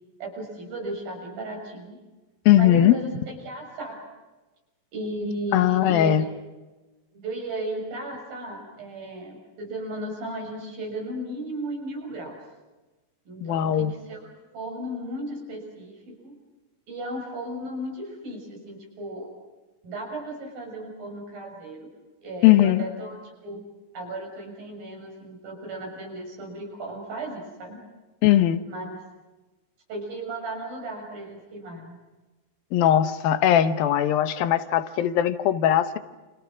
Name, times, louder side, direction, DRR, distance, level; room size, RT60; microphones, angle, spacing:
voice 1, 0.2-2.0 2.6-4.0 4.9-6.2 7.1-12.4 13.3-16.3 16.9-19.3 19.8-21.9 22.2-23.6 23.9-27.8 28.7-29.0 29.9-32.0, right 1 dB, 80° right, 1 dB, 8.5 m, -35 dB
voice 2, 2.5-3.0 5.5-6.2 13.4-13.9 22.4-22.8 28.2-28.6 32.7-36.0, left 12 dB, 85° left, 11 dB, 3.0 m, -19 dB
29.5 x 27.5 x 6.3 m, 1.2 s
omnidirectional pair, 4.1 m